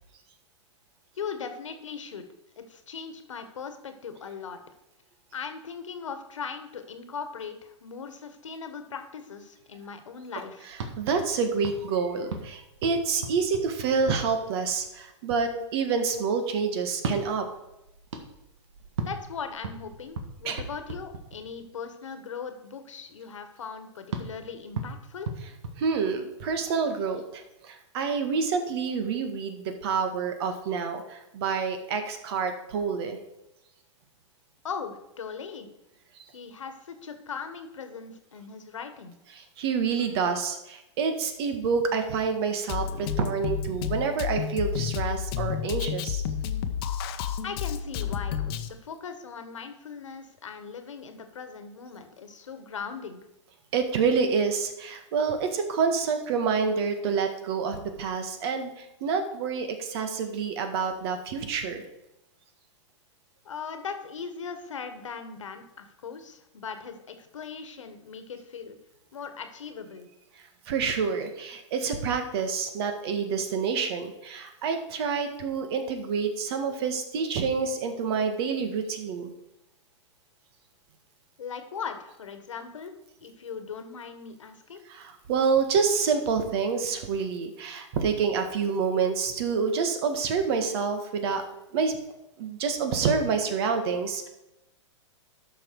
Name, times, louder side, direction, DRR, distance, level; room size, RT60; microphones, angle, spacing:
voice 1, 1.1-2.3 2.6-4.6 5.3-10.7 19.0-25.3 34.6-35.7 36.3-39.1 47.4-48.4 48.6-53.2 63.4-68.8 69.1-70.1 81.4-82.9 83.2-84.8, left 6 dB, 80° left, 8 dB, 1.5 m, -39 dB
voice 2, 10.7-17.4 20.4-20.6 25.8-33.2 36.1-36.2 39.3-46.2 53.7-61.8 70.7-79.3 84.9-91.4 91.7-92.0 92.4-94.3, right 5 dB, 55° right, 7 dB, 1.7 m, -28 dB
sound 1, 10.7-14.5 16.9-21.8 24.1-26.5, right 4 dB, 70° right, 1.8 m, -38 dB
Drum kit, 42.7-48.7, left 8 dB, 50° left, 0.9 m, -31 dB
12.0 x 6.0 x 4.7 m, 0.91 s
hypercardioid pair, 120°, 16 cm